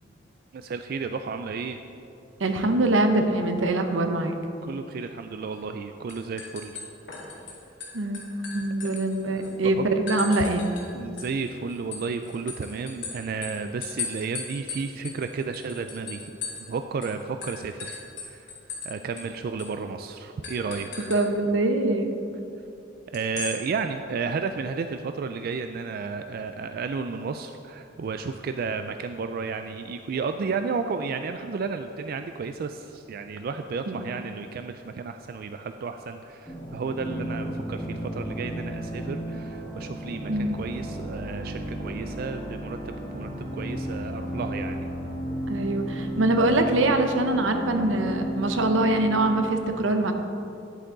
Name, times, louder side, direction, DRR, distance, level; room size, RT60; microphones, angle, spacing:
voice 1, 0.5-1.8 4.6-6.8 8.8-8.9 9.2-9.9 10.9-16.4 16.7-18.5 18.8-21.1 23.1-42.8 43.1-44.9, right 5 dB, 50° right, 7 dB, 0.3 m, -32 dB
voice 2, 2.4-4.4 7.9-8.3 8.5-10.7 21.1-22.1 33.9-34.1 40.3-40.6 45.5-50.1, right 2 dB, 85° right, 6 dB, 0.8 m, -23 dB
sound 1, 5.5-5.8 6.1-7.5 7.8-9.5 10.1-10.9 11.2-16.7 17.0-17.1 17.4-18.9 19.2-19.3 19.6-19.8 20.4-21.2 23.1-23.6, left 5 dB, 65° left, 2.1 m, -37 dB
sound 2, 36.5-49.5, equal, 20° left, 1.8 m, -33 dB
10.0 x 8.4 x 3.9 m, 2.7 s
head